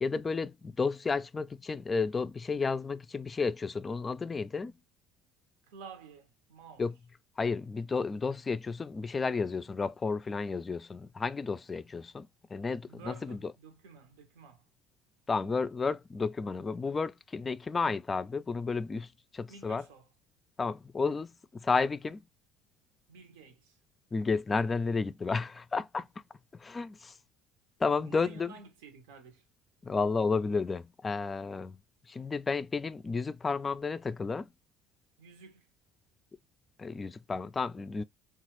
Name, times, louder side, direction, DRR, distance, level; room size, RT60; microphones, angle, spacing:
voice 1, 0.0-4.7 6.8-6.9 7.4-13.4 15.3-19.1 19.3-19.8 20.6-22.2 24.1-26.1 26.6-27.1 27.8-28.5 29.8-31.8 32.1-34.5 36.8-38.0, left 4 dB, 25° left, 0.3 m, -32 dB
voice 2, 5.7-6.9 12.9-14.6 19.5-20.1 23.1-23.8 28.0-29.4 35.2-35.7, right 5 dB, 85° right, 0.8 m, -51 dB
3.0 x 2.3 x 2.9 m
supercardioid pair, 85°, 0 cm